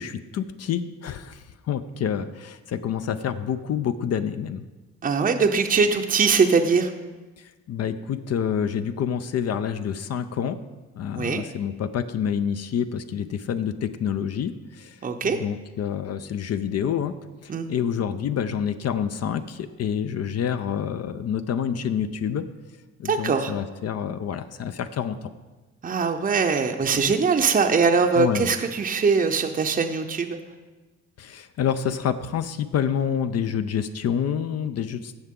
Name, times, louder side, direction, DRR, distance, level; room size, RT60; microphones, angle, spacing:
voice 1, 0.0-4.6 7.4-10.6 10.9-15.0 15.2-17.1 17.4-22.4 23.0-25.2 26.9-27.1 28.1-28.5 31.2-35.2, left 8 dB, 55° left, 10 dB, 0.6 m, -28 dB
voice 2, 5.0-6.9 11.2-11.4 15.0-15.4 17.5-17.7 23.0-23.5 25.8-30.4, right 5 dB, 30° right, 4 dB, 0.7 m, -22 dB
16.0 x 5.7 x 3.7 m, 1.2 s
cardioid pair, 90°, 30 cm